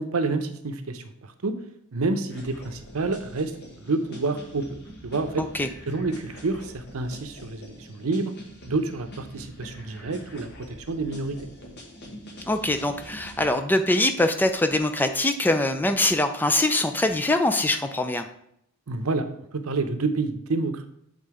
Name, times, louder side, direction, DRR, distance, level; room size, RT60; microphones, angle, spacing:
voice 1, 0.0-1.6 1.9-3.5 3.8-5.4 5.9-8.3 8.7-10.5 10.9-11.5 18.9-19.3 19.5-20.9, right 3 dB, 75° right, 9 dB, 0.7 m, -28 dB
sound 1, 2.3-13.5, equal, 50° left, 1.6 m, -44 dB
voice 2, 5.4-5.7 12.5-18.3, left 2 dB, 10° left, 7 dB, 0.4 m, -23 dB
7.7 x 3.8 x 4.8 m, 0.75 s
head